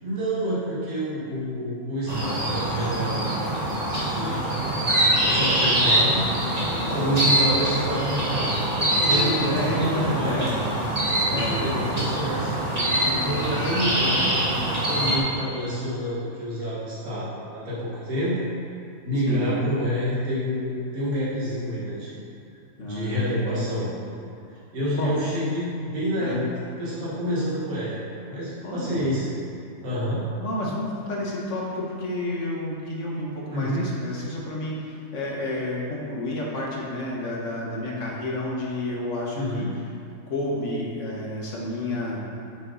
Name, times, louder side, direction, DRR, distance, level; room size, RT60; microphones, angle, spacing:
voice 1, 0.0-3.5 4.1-4.5 5.2-6.3 6.9-8.5 9.0-10.5 11.3-12.5 13.0-14.5 14.8-18.5 19.0-22.2 22.8-23.9 24.7-26.4 26.8-29.3 29.8-30.2 33.5-33.9 39.3-39.7, equal, 70° right, -9 dB, 2.4 m, -28 dB
sound 1, 2.1-15.2, right 1 dB, 25° right, 1.5 m, -24 dB
voice 2, 6.9-7.2 9.0-10.5 11.2-11.5 12.7-13.5 19.2-19.5 22.8-24.0 25.0-25.1 26.2-26.4 28.6-29.0 30.4-39.7 40.3-42.2, left 1 dB, 55° left, -3 dB, 1.7 m, -30 dB
7.9 x 6.9 x 4.1 m, 2.5 s
omnidirectional pair, 1.6 m